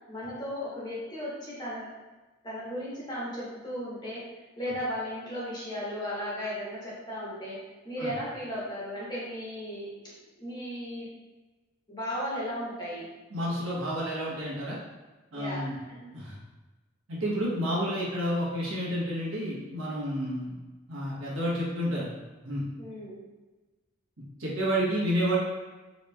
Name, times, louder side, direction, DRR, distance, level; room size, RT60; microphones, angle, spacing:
voice 1, 0.1-1.9 2.4-4.2 4.6-7.6 7.8-11.1 11.9-13.1 15.3-16.1 22.8-23.2, equal, 20° left, -8 dB, 1.1 m, -36 dB
voice 2, 13.3-14.8 15.3-15.8 16.1-16.3 17.1-20.5 20.9-22.1 22.4-22.6 24.4-25.4, equal, 80° right, -6 dB, 1.1 m, -30 dB
4.0 x 3.0 x 2.2 m, 1.2 s
head